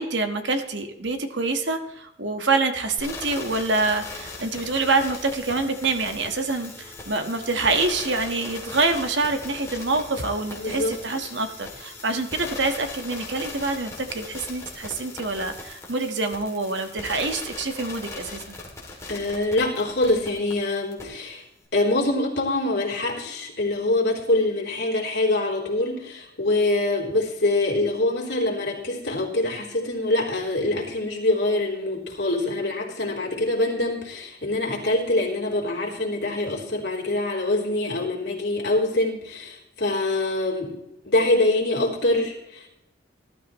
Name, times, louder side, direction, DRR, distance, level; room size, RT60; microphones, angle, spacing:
voice 1, 0.0-18.5, right 3 dB, 75° right, 6 dB, 1.5 m, -26 dB
sound 1, 3.0-20.5 20.9-21.0, left 3 dB, 15° left, 2.7 m, -39 dB
voice 2, 10.6-10.9 19.1-21.4 21.7-40.7 41.1-42.7, left 2 dB, 60° left, -1 dB, 3.6 m, -24 dB
19.5 x 12.5 x 3.1 m, 0.88 s
head